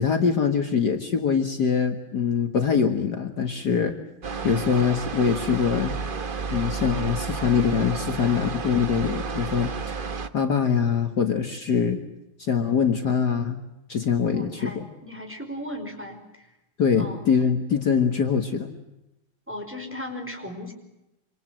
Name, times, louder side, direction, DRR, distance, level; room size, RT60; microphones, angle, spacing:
voice 1, 0.0-3.9 4.4-6.0 6.5-10.0 10.3-12.0 12.4-13.6 13.9-14.9 16.8-18.7, left 6 dB, 55° left, 5 dB, 2.2 m, -23 dB
sound 1, 4.2-10.3, right 5 dB, 35° right, 0.9 m, -31 dB
voice 2, 14.2-16.5 16.9-17.2 19.5-20.7, left 1 dB, 5° right, 3 dB, 4.8 m, -37 dB
27.5 x 26.5 x 7.7 m, 0.94 s
omnidirectional pair, 2.3 m